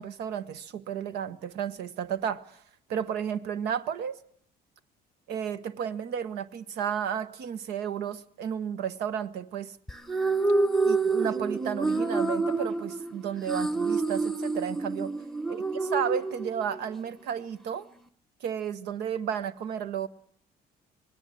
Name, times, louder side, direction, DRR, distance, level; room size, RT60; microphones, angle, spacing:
voice 1, 0.0-2.4 2.9-4.2 5.3-9.8 10.8-15.1 15.5-17.9 18.4-20.1, right 8 dB, 80° right, 12 dB, 1.3 m, -32 dB
sound 1, 9.9-16.9, right 3 dB, ahead, 0.9 m, -28 dB
25.0 x 19.0 x 7.7 m, 0.64 s
cardioid pair, 110°, 17 cm